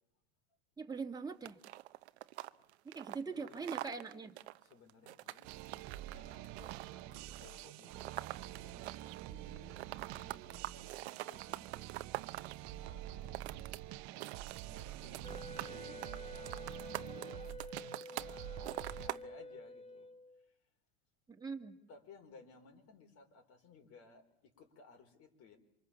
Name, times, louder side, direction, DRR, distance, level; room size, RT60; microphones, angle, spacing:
voice 1, 0.8-1.6 2.9-4.3 21.3-21.8, right 5 dB, 10° right, 3 dB, 2.3 m, -42 dB
sound 1, 1.5-9.3 9.5-12.6 13.1-13.8 14.1-14.8 15.1-15.7 16.0-18.3 18.6-19.2, right 16 dB, 85° right, 0.9 m, -44 dB
voice 2, 3.3-3.8 4.6-12.1 12.7-13.5 13.9-14.0 14.7-20.1 21.9-25.6, left 4 dB, 45° left, 5 dB, 5.0 m, -60 dB
sound 2, 5.4-19.1, right 14 dB, 55° right, 1.0 m, -47 dB
Wind instrument woodwind instrument, 15.2-20.4, left 1 dB, 20° left, 1.9 m, -49 dB
28.0 x 25.0 x 7.3 m, 0.81 s
supercardioid pair, 115°, 32 cm